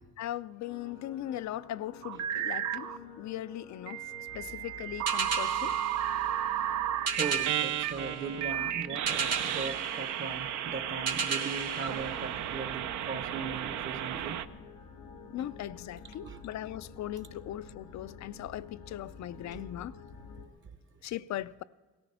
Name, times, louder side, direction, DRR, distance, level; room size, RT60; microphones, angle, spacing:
voice 1, 0.2-2.9 3.2-4.0 4.4-5.7 15.3-19.9 21.0-21.6, left 13 dB, 65° left, 0.5 m, -39 dB
sound 1, 0.6-20.5, left 5 dB, 90° left, 2.4 m, -50 dB
sound 2, 2.0-3.0 3.9-14.5, right 11 dB, 75° right, 0.7 m, -33 dB
sound 3, 5.1-12.9, right 5 dB, 55° right, 1.5 m, -36 dB
voice 2, 7.2-14.4 15.4-15.5 16.2-16.4 19.5-19.6, right 5 dB, 40° right, 0.9 m, -39 dB
17.5 x 14.0 x 5.5 m
cardioid pair, 90°, 30 cm